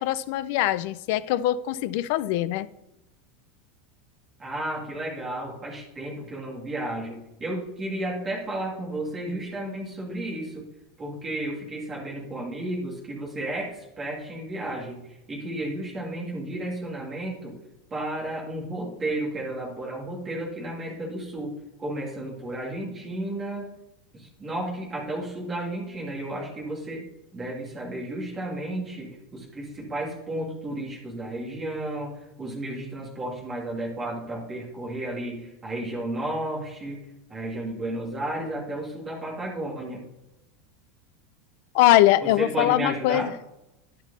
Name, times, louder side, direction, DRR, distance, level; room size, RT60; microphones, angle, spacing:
voice 1, 0.0-2.7 41.7-43.3, left 14 dB, 50° left, 0.4 m, -22 dB
voice 2, 4.4-10.7 11.0-17.5 17.9-21.5 21.8-23.7 24.1-27.0 27.3-37.0 37.3-40.0 42.2-43.3, right 1 dB, 15° right, 2.3 m, -33 dB
11.0 x 6.2 x 4.1 m
supercardioid pair, 175°, 0 cm